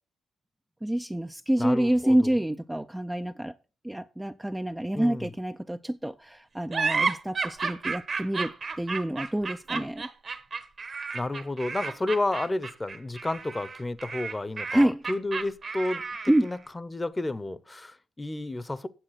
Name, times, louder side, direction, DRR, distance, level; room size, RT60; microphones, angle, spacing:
voice 1, 0.8-3.5 3.8-10.1 14.7-15.0 16.3-16.5, right 1 dB, 10° right, 0.4 m, -27 dB
voice 2, 1.6-2.3 4.9-5.3 11.1-16.0 16.4-18.9, left 2 dB, 15° left, 0.8 m, -31 dB
sound 1, 6.7-16.5, right 4 dB, 40° right, 1.1 m, -32 dB
8.9 x 7.4 x 5.7 m
cardioid pair, 90°, 0 cm